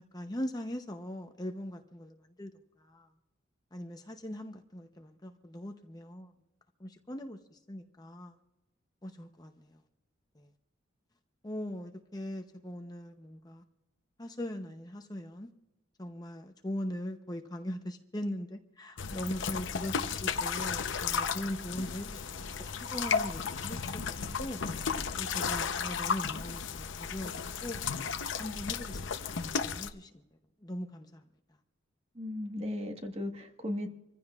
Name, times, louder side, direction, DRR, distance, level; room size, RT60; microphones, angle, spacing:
voice 1, 0.1-2.5 2.9-3.1 3.7-6.3 6.8-7.4 7.7-8.3 9.0-9.6 11.4-13.6 14.2-15.5 16.0-22.2 22.9-24.6 25.1-27.3 27.6-27.9 28.4-29.2 29.6-30.1 30.6-31.2, left 1 dB, 20° left, 5 dB, 0.7 m, -40 dB
sound 1, 19.0-29.9, left 6 dB, 65° left, 0.7 m, -34 dB
voice 2, 32.1-33.9, left 1 dB, 30° right, 4 dB, 1.4 m, -36 dB
26.5 x 15.0 x 2.4 m, 0.98 s
head